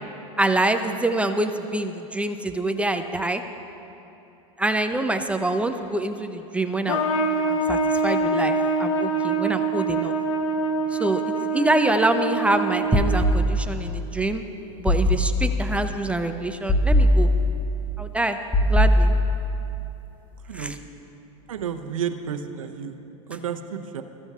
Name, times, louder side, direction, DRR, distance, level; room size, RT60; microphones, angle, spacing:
voice 1, 0.4-3.4 4.6-7.0 7.5-10.1 10.9-14.4 14.8-17.3 18.0-18.4 18.7-19.1 20.5-20.8, right 2 dB, 5° right, 7 dB, 0.6 m, -25 dB
Trumpet, 6.9-13.4, right 2 dB, 75° left, 1.2 m, -25 dB
sound 1, 12.9-13.9 14.9-15.8 16.7-17.8 18.5-19.6, left 1 dB, 10° left, 1.5 m, -20 dB
voice 2, 21.5-23.0 23.3-24.0, right 8 dB, 90° right, 7 dB, 0.8 m, -31 dB
21.5 x 14.5 x 2.4 m, 2.9 s
hypercardioid pair, 110°, 17 cm